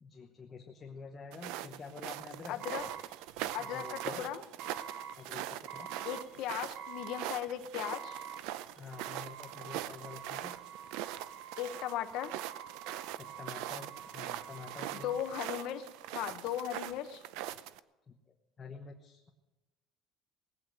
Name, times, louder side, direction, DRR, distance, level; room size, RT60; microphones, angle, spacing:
voice 1, 0.0-2.6 3.6-4.3 5.1-5.9 8.8-10.6 13.2-15.1 18.6-19.3, left 5 dB, 20° left, 2 dB, 1.1 m, -48 dB
sound 1, 1.3-17.8, right 13 dB, 85° right, 0.6 m, -42 dB
voice 2, 2.5-2.8 3.5-4.4 6.0-8.2 11.6-12.3 15.0-15.9 16.1-17.2, left 11 dB, 60° left, 7 dB, 1.0 m, -37 dB
sound 2, 2.6-16.2, right 7 dB, 45° right, 1.3 m, -47 dB
19.0 x 8.3 x 9.1 m, 1.1 s
cardioid pair, 180°, 0 cm